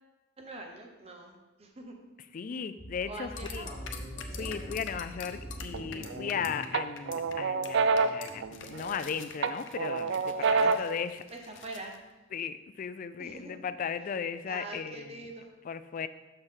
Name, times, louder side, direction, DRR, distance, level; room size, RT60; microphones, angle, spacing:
voice 1, 0.4-1.9 3.1-3.9 4.3-4.6 10.4-10.9 11.3-12.0 13.2-13.5 14.5-15.5, right 2 dB, 30° right, 2 dB, 0.8 m, -44 dB
voice 2, 2.3-3.7 4.3-11.2 12.3-15.3 15.6-16.1, left 6 dB, 45° left, 12 dB, 0.3 m, -36 dB
sound 1, 2.8-8.4, equal, 10° left, 1.9 m, -43 dB
sound 2, 3.4-6.7 7.0-7.3 7.6-7.7 8.0-12.0, left 7 dB, 70° left, 0.7 m, -46 dB
sound 3, 5.7-6.3 6.7-9.0 9.4-11.0, right 4 dB, 65° right, 0.3 m, -28 dB
6.5 x 6.2 x 3.7 m, 1.1 s
head